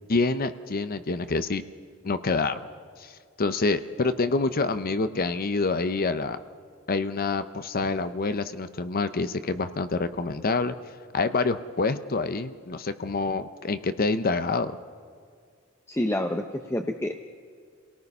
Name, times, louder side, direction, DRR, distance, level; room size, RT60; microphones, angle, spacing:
voice 1, 0.1-1.6 2.0-2.7 3.0-3.1 3.4-6.4 6.9-10.7 11.1-14.7, left 3 dB, 45° left, 11 dB, 0.7 m, -27 dB
voice 2, 15.9-17.3, left 1 dB, 10° left, 4 dB, 0.8 m, -28 dB
28.5 x 18.0 x 5.5 m, 2.1 s
head